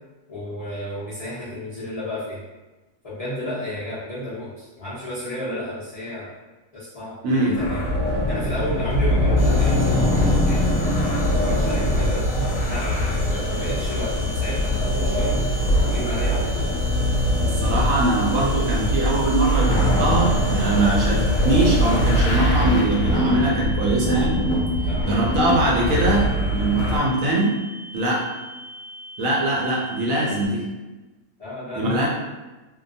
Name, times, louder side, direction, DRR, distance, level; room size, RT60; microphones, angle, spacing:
voice 1, 0.3-2.4 3.0-6.3 6.7-7.8 8.3-10.7 11.1-15.4 15.8-16.7 24.8-25.1 31.4-32.1, left 1 dB, 50° left, -11 dB, 0.4 m, -32 dB
voice 2, 7.2-7.5 17.4-24.5 25.0-26.2 26.5-27.5 27.9-28.2 29.2-30.6 31.8-32.1, right 2 dB, 70° right, -4 dB, 0.9 m, -22 dB
sound 1, 7.5-27.0, equal, 70° left, 0.9 m, -22 dB
sound 2, 9.4-22.2, right 1 dB, 20° left, 0.8 m, -34 dB
sound 3, 13.3-30.5, equal, 20° right, 0.9 m, -40 dB
2.7 x 2.2 x 2.6 m, 1.1 s
omnidirectional pair, 1.6 m